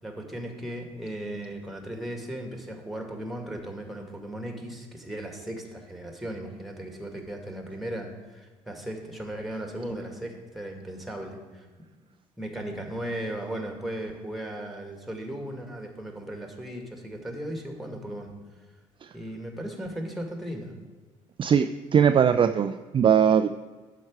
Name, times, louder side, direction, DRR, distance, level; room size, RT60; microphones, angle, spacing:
voice 1, 0.0-11.7 12.4-18.3 19.1-20.7, right 1 dB, ahead, 2 dB, 2.0 m, -36 dB
voice 2, 21.4-23.5, right 8 dB, 35° right, 9 dB, 0.4 m, -20 dB
11.5 x 4.7 x 4.8 m, 1.3 s
hypercardioid pair, 50°, 15 cm